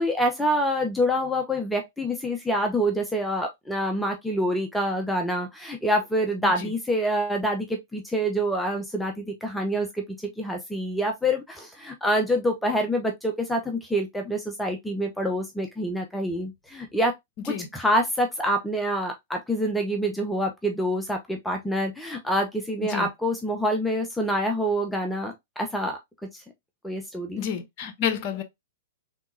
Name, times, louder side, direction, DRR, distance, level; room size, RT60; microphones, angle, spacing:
voice 1, 0.0-17.1 17.4-26.0 26.3-26.4 26.8-27.5, equal, 5° left, 0.7 m, -26 dB
voice 2, 27.4-28.4, left 8 dB, 40° left, 0.8 m, -30 dB
3.6 x 3.4 x 2.6 m
figure-of-eight pair, 105°, 0 cm